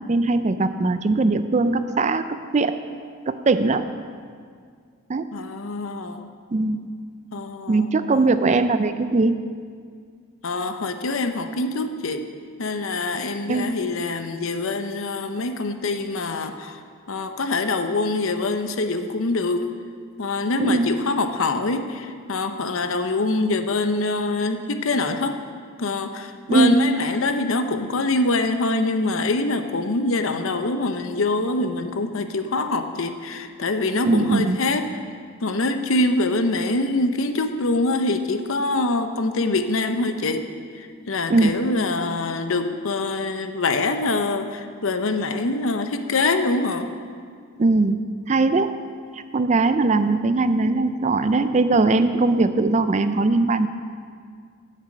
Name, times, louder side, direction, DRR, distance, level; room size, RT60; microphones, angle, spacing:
voice 1, 0.1-2.8 3.3-3.9 5.1-5.3 6.5-6.8 7.7-9.4 13.5-13.7 20.6-20.9 26.5-26.8 34.0-34.6 41.3-41.7 47.6-48.0 48.3-48.7 49.1-53.7, right 3 dB, 30° right, 11 dB, 0.4 m, -20 dB
voice 2, 5.3-6.2 7.3-7.9 10.4-12.2 12.6-16.8 17.1-19.7 20.2-25.4 25.8-35.0 35.4-40.5 40.7-46.9, left 2 dB, 65° left, 7 dB, 0.7 m, -24 dB
9.4 x 7.6 x 7.7 m, 2.1 s
head